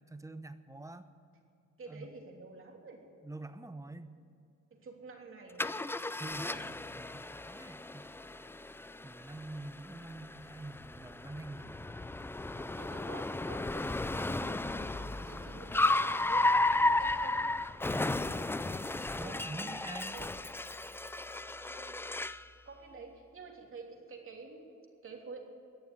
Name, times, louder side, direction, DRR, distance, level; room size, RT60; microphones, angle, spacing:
voice 1, 0.1-1.1 1.9-2.1 3.2-4.2 6.2-8.1 8.4-8.5 9.0-11.9 12.5-12.7 17.9-18.3 19.2-20.2, right 2 dB, 10° right, 11 dB, 0.9 m, -46 dB
voice 2, 1.8-3.0 4.7-5.8 12.7-14.8 15.1-17.6 19.2-20.3 21.7-22.0 22.7-24.7 25.0-25.4, right 4 dB, 45° right, 1 dB, 3.2 m, -49 dB
Car, 5.6-22.5, left 2 dB, 10° left, 0.4 m, -34 dB
20.5 x 7.0 x 9.9 m, 2.6 s
cardioid pair, 90°, 30 cm